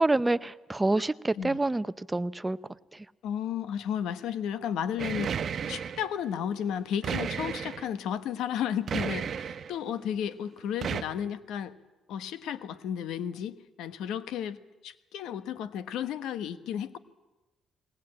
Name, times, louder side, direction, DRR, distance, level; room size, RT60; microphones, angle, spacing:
voice 1, 0.0-2.6, right 2 dB, 15° right, 14 dB, 0.7 m, -27 dB
voice 2, 3.2-11.8 12.1-17.0, left 9 dB, 85° left, 12 dB, 1.1 m, -33 dB
sound 1, 5.0-6.1 7.0-7.9 8.9-9.7 10.8-11.0, right 7 dB, 55° right, 1.0 m, -33 dB
21.0 x 19.0 x 8.7 m, 1.1 s
cardioid pair, 90°, 0 cm